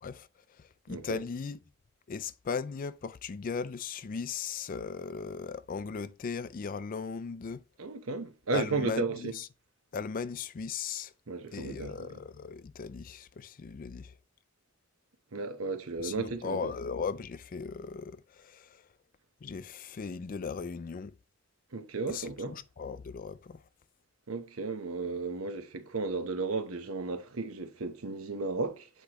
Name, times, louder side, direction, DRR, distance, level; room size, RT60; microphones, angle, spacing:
voice 1, 0.0-1.6 2.1-7.6 8.5-9.5 9.9-11.1 11.5-14.2 16.0-18.9 19.4-21.2 22.1-23.7, left 5 dB, 40° left, 0.4 m, -38 dB
voice 2, 0.9-1.2 7.8-9.3 11.3-12.1 15.3-16.7 21.7-22.5 24.3-28.9, right 3 dB, 80° right, 0.9 m, -34 dB
8.1 x 4.5 x 2.9 m
head